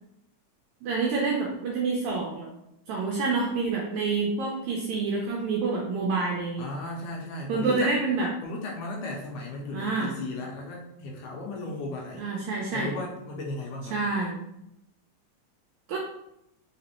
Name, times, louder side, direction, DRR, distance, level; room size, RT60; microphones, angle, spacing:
voice 1, 0.8-2.5 2.9-6.6 7.5-8.3 9.7-10.1 12.1-12.9 13.9-14.4 15.9-16.0, right 4 dB, 80° right, -2 dB, 1.7 m, -27 dB
voice 2, 6.6-7.9 8.4-12.3 12.7-14.0, left 2 dB, 75° left, -1 dB, 2.1 m, -35 dB
5.0 x 3.2 x 2.9 m, 0.83 s
omnidirectional pair, 3.8 m